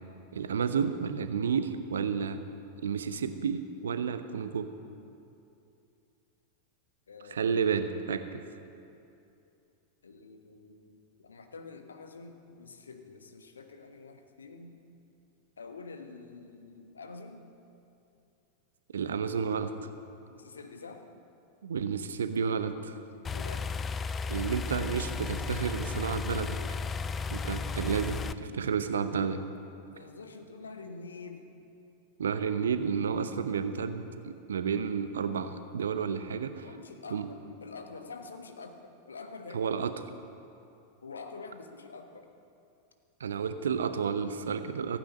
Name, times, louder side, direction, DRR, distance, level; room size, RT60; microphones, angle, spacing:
voice 1, 0.3-2.4 2.8-4.7 7.3-8.4 18.9-19.7 21.6-23.0 24.3-26.6 27.3-29.4 32.2-36.7 37.1-37.3 39.5-39.9 43.2-45.0, right 6 dB, 65° right, 10 dB, 0.7 m, -31 dB
voice 2, 7.1-7.5 10.0-14.8 15.6-17.4 20.3-21.1 23.3-24.1 27.4-27.6 28.4-28.7 29.8-31.5 36.4-39.7 41.0-42.3, left 4 dB, 70° left, 6 dB, 1.2 m, -47 dB
sound 1, 23.2-28.3, left 5 dB, 20° left, 0.4 m, -34 dB
15.0 x 9.1 x 6.6 m, 2.6 s
figure-of-eight pair, 90°, 0 cm